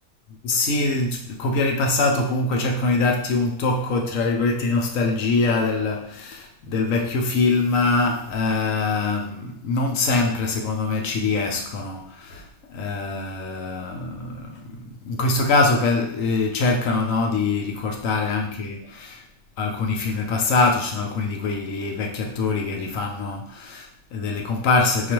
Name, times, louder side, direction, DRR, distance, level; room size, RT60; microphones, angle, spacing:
voice 1, 0.4-19.2 19.6-25.1, left 3 dB, 90° left, 1.1 m, -23 dB
4.5 x 2.4 x 2.9 m
omnidirectional pair, 1.3 m